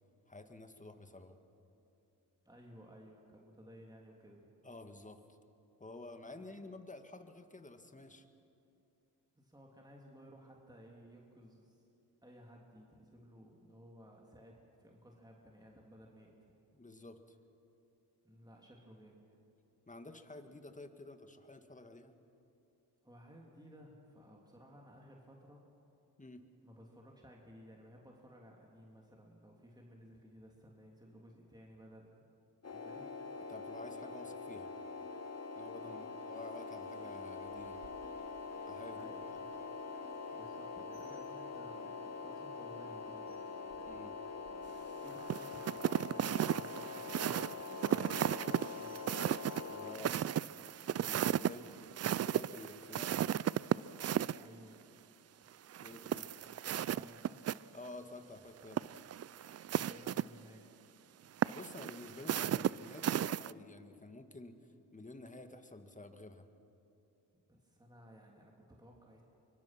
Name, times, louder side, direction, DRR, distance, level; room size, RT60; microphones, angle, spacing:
voice 1, 0.3-1.4 4.6-5.2 5.8-8.3 16.7-17.4 19.9-22.1 26.2-26.4 33.5-34.7 35.6-36.0 36.3-37.8 38.7-39.1 43.8-44.2 48.0-48.4 49.7-50.2 51.0-53.3 55.8-56.2 57.7-58.8 61.4-66.5, left 2 dB, 20° left, 7 dB, 1.9 m, -51 dB
voice 2, 2.4-4.5 6.3-6.4 9.3-11.8 12.2-16.3 18.2-19.2 23.0-25.6 26.6-32.2 32.7-33.1 35.8-36.1 38.9-39.5 40.3-43.4 45.0-49.0 51.5-51.8 54.4-54.8 55.9-57.4 59.7-60.7 67.5-69.2, equal, 10° right, -1 dB, 3.1 m, -57 dB
sound 1, 32.6-50.0, left 4 dB, 40° left, 1.7 m, -44 dB
Rain, 36.3-49.6, right 4 dB, 75° right, 3.3 m, -66 dB
sound 2, 45.3-54.4 55.7-57.6 57.9-58.0 58.6-60.2 61.4-63.5, right 10 dB, 40° right, 0.4 m, -35 dB
24.0 x 23.0 x 6.0 m, 2.7 s
cardioid pair, 60°, 40 cm